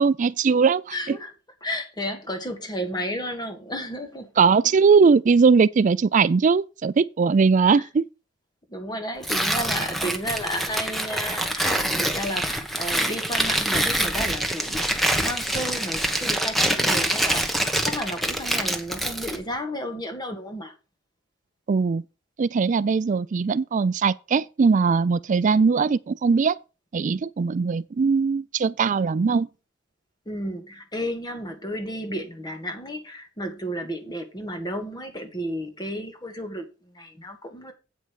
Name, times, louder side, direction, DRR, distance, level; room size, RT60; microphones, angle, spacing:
voice 1, 0.0-0.8 1.1-1.2 4.4-8.1 21.7-22.0 22.4-26.6 26.9-29.5, right 5 dB, 40° right, 0.4 m, -20 dB
voice 2, 0.9-1.3 1.6-4.3 7.7-7.9 8.7-20.7 30.2-37.7, equal, 20° left, 1.7 m, -32 dB
Tearing, 9.2-19.4, right 1 dB, ahead, 1.2 m, -25 dB
8.6 x 5.3 x 6.4 m
head